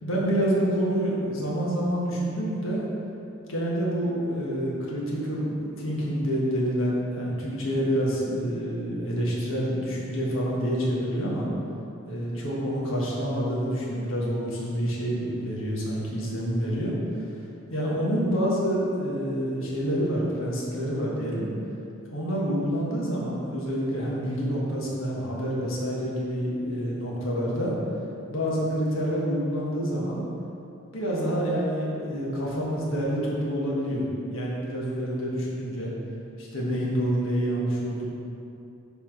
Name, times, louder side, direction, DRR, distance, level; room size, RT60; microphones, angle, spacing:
voice 1, 0.0-2.8 3.5-11.5 12.0-16.9 17.7-21.5 22.1-27.7 28.3-30.3 30.9-35.9 36.4-38.0, equal, 70° left, -4 dB, 1.5 m, -27 dB
7.1 x 3.5 x 6.0 m, 2.8 s
head